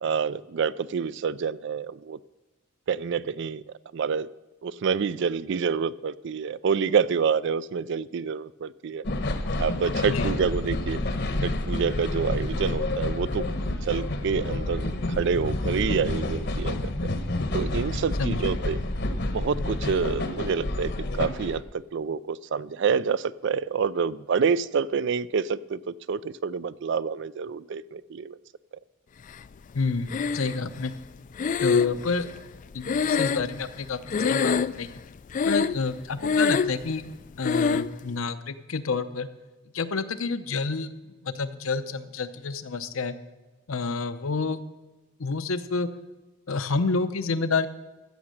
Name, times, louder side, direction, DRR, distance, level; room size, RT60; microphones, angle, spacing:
voice 1, 0.0-2.2 2.9-3.6 3.9-4.3 4.6-9.0 9.6-11.0 11.4-13.4 13.7-17.1 17.5-18.8 19.3-28.4, right 6 dB, 60° right, 18 dB, 0.4 m, -27 dB
sound 1, 9.0-21.6, left 2 dB, 55° left, 1.0 m, -29 dB
voice 2, 29.7-30.9 31.6-32.3 32.7-35.0 35.4-37.0 37.4-39.3 39.7-43.1 43.7-44.6 45.2-45.9 46.5-47.7, left 4 dB, 75° left, 11 dB, 0.8 m, -29 dB
Breathing, 30.1-30.8 31.4-33.8 34.1-34.9 35.3-35.9 36.2-36.8 37.4-37.9, left 5 dB, 40° left, 0.3 m, -24 dB
14.5 x 7.2 x 6.5 m, 1.2 s
head